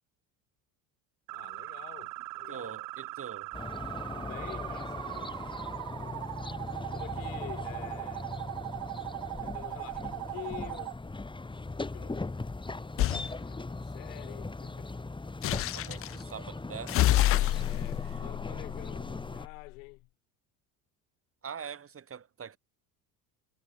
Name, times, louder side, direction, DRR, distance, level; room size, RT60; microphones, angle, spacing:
voice 1, 1.3-2.8 4.1-5.5 5.9-6.3 6.9-8.4 9.4-11.0 11.7-12.3 13.4-14.9 17.6-20.1, left 29 dB, 80° left, 5.1 m, -48 dB
sound 1, 1.3-10.9, right 20 dB, 55° right, 0.7 m, -40 dB
voice 2, 2.5-3.5 15.7-17.7 18.0-18.2 21.4-22.6, right 7 dB, 35° right, 5.2 m, -44 dB
sound 2, 3.5-19.5, left 3 dB, 10° left, 2.7 m, -39 dB
sound 3, 13.0-13.3 15.4-16.1 16.9-19.5, left 14 dB, 35° left, 0.4 m, -28 dB
supercardioid pair, 95°, 39 cm